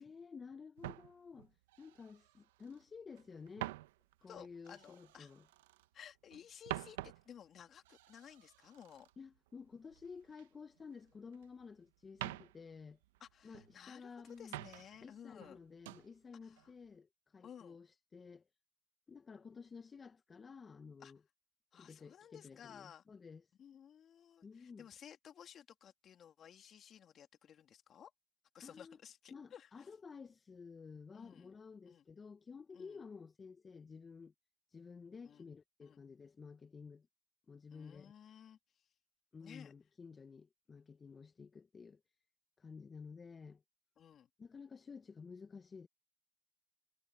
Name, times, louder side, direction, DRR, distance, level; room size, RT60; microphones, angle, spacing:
voice 1, 0.0-3.8 4.2-5.4 9.2-13.0 13.4-14.5 15.0-18.4 19.1-21.2 21.7-23.5 24.4-24.9 28.6-29.0 29.3-34.3 34.7-37.1 37.5-38.1 39.3-42.0 42.6-43.6 44.4-45.9, left 5 dB, 30° left, 1.1 m, -53 dB
sound 1, 0.8-2.8 3.1-5.9 6.3-10.5 10.8-11.7 12.0-13.8 14.2-15.1 15.4-16.1 16.6-16.9, right 17 dB, 85° right, 1.1 m, -49 dB
voice 2, 4.3-5.3 5.9-9.1 13.2-15.6 16.4-16.7 17.4-17.8 21.0-21.1 21.7-23.0 23.6-28.1 28.5-29.9 31.1-31.5 31.8-32.0 32.7-33.0 35.2-35.5 35.8-36.0 37.7-38.9 39.4-39.7 44.0-44.3, left 9 dB, 50° left, 3.0 m, -56 dB
hypercardioid pair, 75°, 0 cm